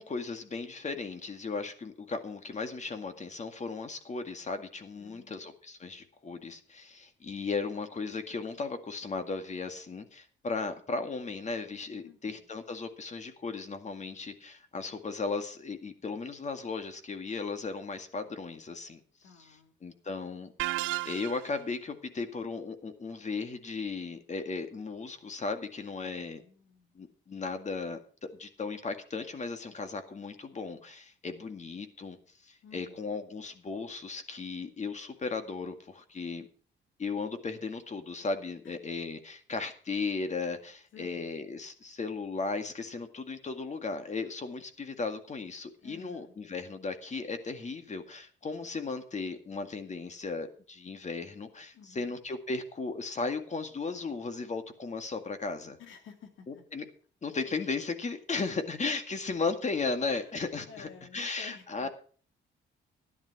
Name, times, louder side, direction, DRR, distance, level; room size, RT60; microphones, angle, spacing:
voice 1, 0.0-19.0 19.8-20.5 20.8-26.4 26.9-32.2 32.4-36.5 37.0-55.8 56.5-56.8 57.2-62.0, left 4 dB, 35° left, 8 dB, 2.0 m, -36 dB
voice 2, 5.0-5.5 12.0-12.6 19.2-19.8 26.0-27.0 32.6-33.1 38.6-38.8 40.9-41.3 45.8-46.4 51.7-52.1 55.8-56.6 60.0-62.0, left 6 dB, 75° left, 6 dB, 2.6 m, -53 dB
sound 1, 20.6-21.6, right 17 dB, 80° right, 0.5 m, -33 dB
13.0 x 10.5 x 4.7 m, 0.43 s
cardioid pair, 90°, 20 cm